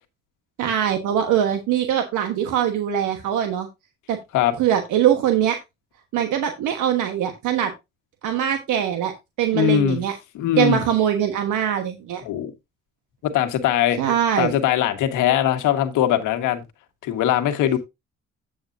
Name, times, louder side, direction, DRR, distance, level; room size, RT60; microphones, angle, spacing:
voice 1, 0.6-3.7 4.1-4.2 4.6-5.6 6.1-7.7 8.2-10.2 10.6-12.2 14.0-14.5, right 10 dB, 85° right, 1.3 m, -22 dB
voice 2, 9.5-10.0 10.3-10.8 12.2-12.5 13.2-14.0 14.4-16.6 17.0-17.8, left 11 dB, 90° left, 1.5 m, -21 dB
8.8 x 7.9 x 2.6 m
cardioid pair, 90°, 30 cm